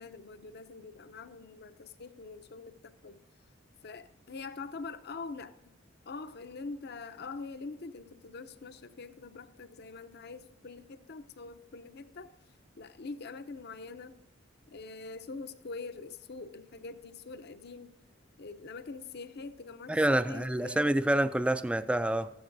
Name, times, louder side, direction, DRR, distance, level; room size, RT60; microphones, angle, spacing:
voice 1, 0.0-3.2 3.8-5.7 6.1-12.3 12.8-14.1 14.7-17.9 18.4-21.2, left 4 dB, 55° left, 0.7 m, -44 dB
voice 2, 19.9-22.3, right 1 dB, 5° right, 0.3 m, -27 dB
14.5 x 14.0 x 2.6 m
head